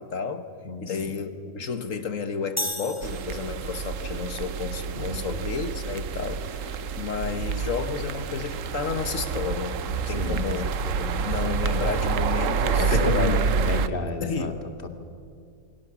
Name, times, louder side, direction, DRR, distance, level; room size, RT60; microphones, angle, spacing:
voice 1, 0.0-0.5 0.8-10.7 11.2-13.7 14.2-14.5, left 5 dB, 60° left, 9 dB, 1.6 m, -31 dB
voice 2, 0.6-1.1 4.9-5.2 10.1-10.4 10.8-11.1 12.7-14.5 14.8-14.9, left 2 dB, 40° left, 6 dB, 2.2 m, -30 dB
sound 1, 2.6-4.0, left 1 dB, 10° left, 2.0 m, -34 dB
sound 2, 3.0-13.9, right 5 dB, 65° right, 1.1 m, -28 dB
28.0 x 23.0 x 7.0 m, 2.3 s
omnidirectional pair, 1.5 m